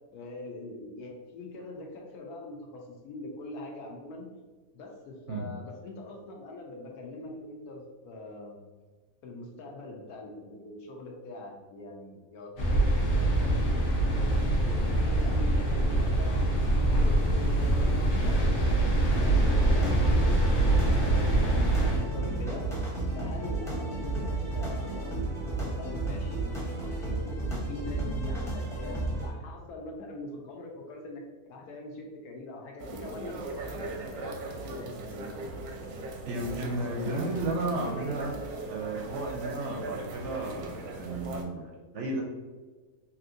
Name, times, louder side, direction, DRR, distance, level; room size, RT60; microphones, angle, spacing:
voice 1, 0.1-4.3 4.7-8.6 9.2-13.8 14.1-14.3 14.6-20.1 20.5-22.7 23.1-25.2 25.6-35.4, left 2 dB, 85° left, 0 dB, 1.2 m, -43 dB
sound 1, 12.6-22.0, right 1 dB, 65° left, 1.2 m, -24 dB
sound 2, 19.0-29.3, right 2 dB, 5° left, 0.4 m, -33 dB
sound 3, 32.8-41.4, right 2 dB, 85° right, 1.1 m, -39 dB
voice 2, 36.2-38.4 38.7-42.2, right 2 dB, 65° right, -1 dB, 0.7 m, -33 dB
3.5 x 2.7 x 2.5 m, 1.4 s
omnidirectional pair, 1.6 m